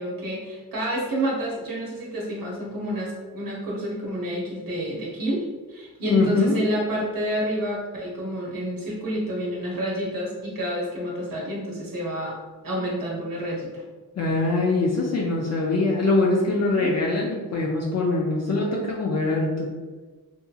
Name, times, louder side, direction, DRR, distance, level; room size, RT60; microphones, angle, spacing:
voice 1, 0.0-12.4 12.6-13.8 16.7-16.9, equal, 65° right, -4 dB, 0.7 m, -29 dB
voice 2, 6.0-6.6 14.2-19.7, left 3 dB, 45° left, -2 dB, 0.4 m, -23 dB
2.7 x 2.6 x 2.3 m, 1.4 s
wide cardioid pair, 95°, 36 cm